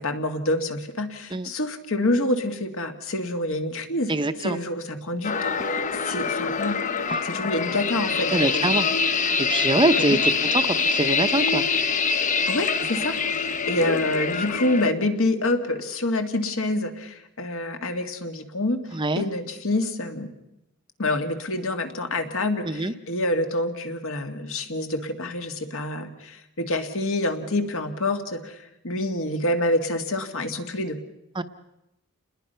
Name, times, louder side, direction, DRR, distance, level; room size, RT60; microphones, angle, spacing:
voice 1, 0.0-6.8 7.2-8.8 10.0-10.2 12.4-18.8 19.2-20.3 21.0-28.6 28.8-31.0, left 1 dB, 65° left, 6 dB, 2.2 m, -27 dB
voice 2, 4.1-4.6 8.3-8.9 9.4-11.7 18.9-19.2 22.6-22.9 31.4-31.5, right 2 dB, 20° right, 10 dB, 0.8 m, -24 dB
sound 1, 5.2-14.9, left 5 dB, 35° left, 0.9 m, -25 dB
29.0 x 21.0 x 5.7 m, 0.88 s
head